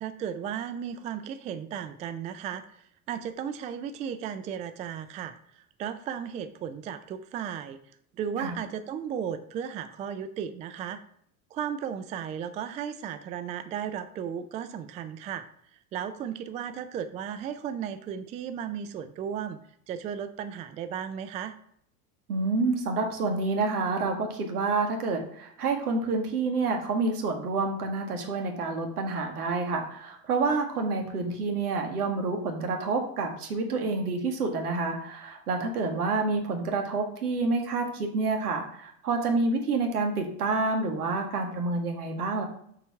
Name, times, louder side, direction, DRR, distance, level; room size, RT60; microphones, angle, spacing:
voice 1, 0.0-7.8 8.2-11.0 11.5-15.5 15.7-19.6 19.9-21.6, right 8 dB, 15° right, 11 dB, 0.3 m, -35 dB
voice 2, 22.3-42.4, right 3 dB, 70° right, 3 dB, 1.9 m, -28 dB
6.8 x 4.8 x 5.8 m, 0.68 s
figure-of-eight pair, 80°, 46 cm